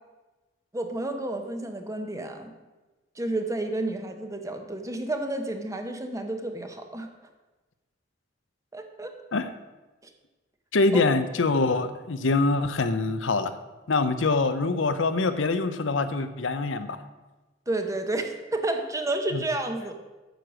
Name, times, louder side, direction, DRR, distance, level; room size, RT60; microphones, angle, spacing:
voice 1, 0.7-2.5 3.2-7.1 8.7-9.1 10.9-11.0 17.7-19.9, right 2 dB, 15° right, 5 dB, 1.0 m, -30 dB
voice 2, 10.7-13.5 13.9-17.0 19.3-19.4, left 3 dB, 80° left, 10 dB, 0.7 m, -24 dB
9.1 x 6.7 x 6.2 m, 1.2 s
head